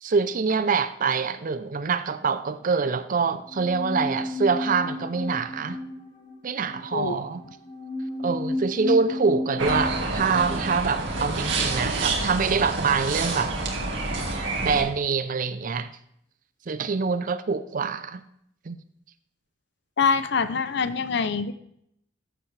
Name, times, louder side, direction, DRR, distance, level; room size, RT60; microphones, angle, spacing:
voice 1, 0.0-5.8 6.4-7.4 8.2-13.5 14.6-15.9 16.7-18.2 18.7-18.8, right 5 dB, 45° right, 0.5 m, -25 dB
sound 1, 3.4-12.8 13.0-13.1, left 2 dB, 25° left, 2.2 m, -34 dB
sound 2, 9.6-14.8, right 3 dB, 75° right, 1.9 m, -28 dB
voice 2, 20.0-21.5, left 5 dB, 65° left, 0.6 m, -24 dB
14.5 x 7.2 x 3.3 m
head